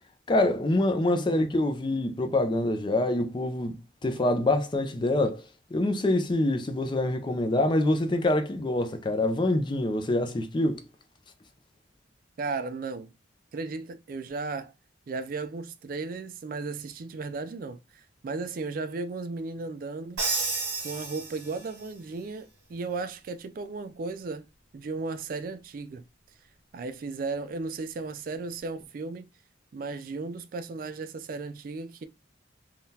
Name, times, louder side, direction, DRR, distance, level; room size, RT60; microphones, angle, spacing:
voice 1, 0.3-5.4 5.7-10.8, left 1 dB, 25° left, 0.4 m, -25 dB
voice 2, 1.1-1.5 12.4-13.1 13.5-14.7 15.1-20.3 20.8-24.5 24.7-26.0 26.7-29.3 29.7-32.1, right 3 dB, 50° right, 0.3 m, -35 dB
Crash cymbal, 20.2-21.9, right 3 dB, 80° right, 1.5 m, -31 dB
3.6 x 2.3 x 2.7 m
head